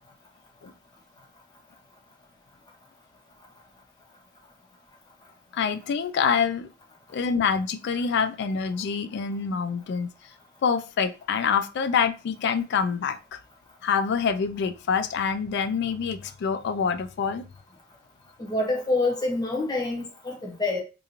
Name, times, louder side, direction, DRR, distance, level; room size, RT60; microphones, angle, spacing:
voice 1, 5.5-6.7 7.1-10.1 10.6-13.4 13.8-17.4, left 6 dB, 55° left, 0.3 m, -26 dB
voice 2, 18.4-20.8, left 2 dB, 20° left, 0.8 m, -26 dB
2.6 x 2.4 x 2.8 m
head